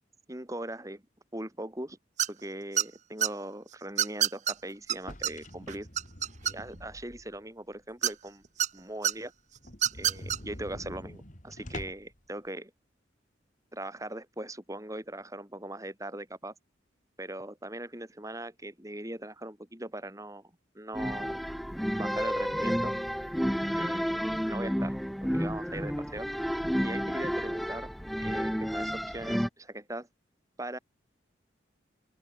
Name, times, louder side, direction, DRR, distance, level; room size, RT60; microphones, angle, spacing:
voice 1, 0.3-1.0 1.3-2.0 2.3-5.9 6.4-8.4 8.7-9.3 9.9-12.7 13.7-16.5 17.2-20.5 20.7-21.5 21.8-23.0 23.7-26.3 26.8-27.9 28.2-30.1 30.6-30.8, right 1 dB, 15° right, 3.3 m, -40 dB
sound 1, 2.2-2.5 2.8-3.3 4.0-4.5 4.9-5.0 5.2-5.3 5.7-6.8 8.0-8.7 9.0-9.1 9.7-10.4, right 10 dB, 40° right, 0.7 m, -26 dB
sound 2, 4.9-7.5 7.9-8.0 8.4-8.5 8.8-8.9 9.1-9.2 9.6-12.2, left 1 dB, 40° left, 5.2 m, -45 dB
sound 3, 20.9-29.5, equal, ahead, 1.7 m, -31 dB
open air
head